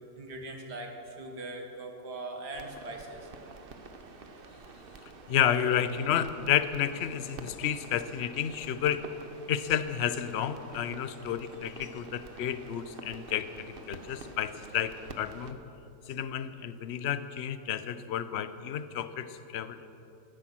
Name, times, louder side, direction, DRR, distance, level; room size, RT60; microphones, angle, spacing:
voice 1, 0.2-3.3, right 2 dB, 75° right, 2 dB, 2.3 m, -41 dB
sound 1, 2.5-15.5, right 3 dB, 40° right, 0.9 m, -48 dB
voice 2, 5.3-9.0 9.5-15.6 16.1-19.9, left 9 dB, 55° left, 12 dB, 0.7 m, -31 dB
17.0 x 13.0 x 6.1 m, 2.9 s
omnidirectional pair, 1.8 m